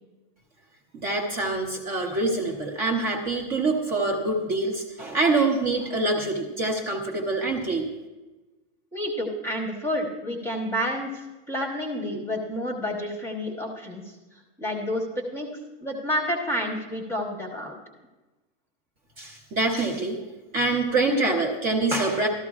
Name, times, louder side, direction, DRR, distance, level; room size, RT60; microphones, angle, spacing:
voice 1, 0.9-7.9 19.2-20.2 20.5-22.3, right 2 dB, 25° right, 1 dB, 0.9 m, -25 dB
voice 2, 8.9-11.2 11.5-14.0 14.6-15.5 15.8-17.7, equal, 5° left, 1 dB, 1.0 m, -29 dB
14.0 x 13.0 x 2.4 m, 1.1 s
supercardioid pair, 170°, 36 cm